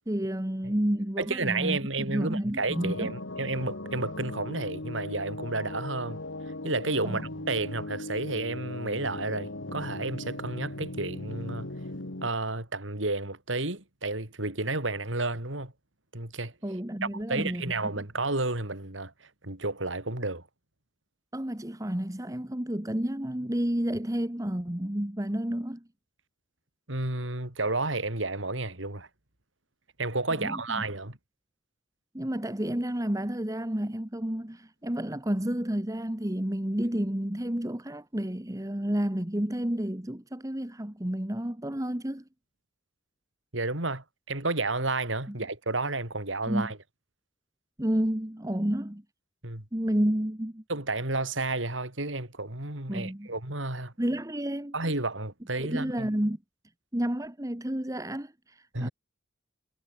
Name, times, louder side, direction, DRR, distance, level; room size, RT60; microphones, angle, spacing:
voice 1, 0.1-1.8 2.1-3.1 7.0-7.2 16.6-17.6 21.3-25.8 30.3-30.8 32.1-42.2 45.3-45.4 46.5-46.7 47.8-49.0 49.7-50.6 52.9-53.3 54.0-54.7 55.6-56.4 56.9-58.9, right 1 dB, 15° right, 1.3 m, -30 dB
voice 2, 1.2-6.2 6.6-11.7 12.2-15.7 16.1-16.5 17.0-19.1 19.4-20.4 26.9-29.1 30.0-31.2 43.5-46.8 49.4-49.6 50.7-53.9 54.7-56.1 58.7-58.9, right 2 dB, 80° right, 4.3 m, -31 dB
sound 1, 2.7-12.3, left 2 dB, 80° left, 2.4 m, -38 dB
head